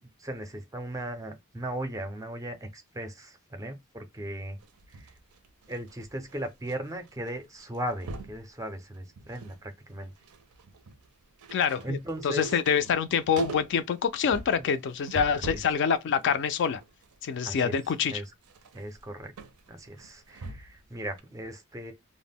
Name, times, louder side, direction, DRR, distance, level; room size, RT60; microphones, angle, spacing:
voice 1, 0.0-4.6 4.9-5.1 5.7-10.1 11.8-12.6 14.6-14.7 15.5-15.6 17.4-17.7 18.1-18.3 18.7-19.3 19.7-21.9, right 1 dB, 15° right, 0.4 m, -37 dB
sound 1, 4.6-6.8 7.0-7.3 7.6-8.4 8.9-9.6 9.9-15.8 16.2-20.8 21.2-21.3, right 3 dB, 75° right, 0.5 m, -42 dB
voice 2, 11.5-12.0 12.2-16.8 17.2-18.2, left 7 dB, 55° left, 0.3 m, -26 dB
2.1 x 2.0 x 3.4 m
head